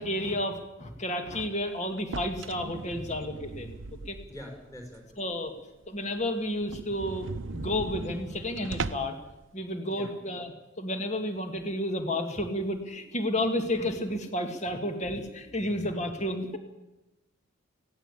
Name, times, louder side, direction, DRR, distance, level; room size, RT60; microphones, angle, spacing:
voice 1, 0.0-4.2 5.2-5.5 5.9-9.2 9.5-10.5 10.8-16.6, left 1 dB, 35° left, 6 dB, 2.2 m, -31 dB
sound 1, 2.0-4.5 5.0-5.1 5.5-5.6 5.8-5.9 6.2-6.3 6.6-9.2, right 3 dB, 70° right, 0.8 m, -38 dB
voice 2, 4.0-5.0 9.6-10.1 15.6-15.9, equal, 15° left, 3 dB, 5.5 m, -45 dB
20.0 x 17.0 x 8.4 m, 1.0 s
head